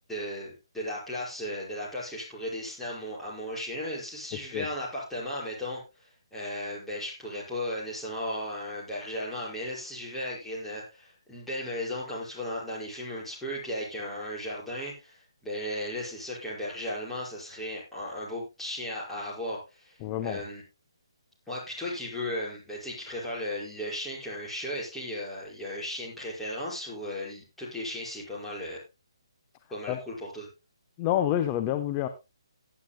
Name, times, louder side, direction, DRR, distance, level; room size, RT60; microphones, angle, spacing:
voice 1, 0.1-20.0 20.2-20.6 21.5-28.8 29.7-30.5, left 1 dB, 5° left, -6 dB, 5.4 m, -36 dB
voice 2, 20.0-20.4 29.9-30.0 31.0-32.1, left 11 dB, 25° left, 9 dB, 0.8 m, -28 dB
19.0 x 9.9 x 2.2 m, 0.27 s
figure-of-eight pair, 150°, 3 cm